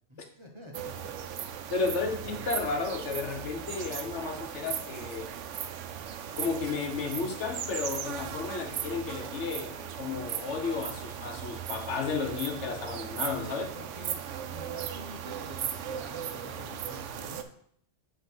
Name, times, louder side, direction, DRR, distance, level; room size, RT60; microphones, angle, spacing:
voice 1, 0.1-1.8 2.6-3.0 13.3-17.4, left 1 dB, 25° right, 1 dB, 1.0 m, -48 dB
sound 1, 0.7-17.4, right 9 dB, 80° right, 0.9 m, -37 dB
voice 2, 1.7-5.3 6.4-13.7, left 4 dB, 70° left, 4 dB, 1.2 m, -33 dB
7.6 x 3.4 x 6.0 m, 0.65 s
omnidirectional pair, 1.2 m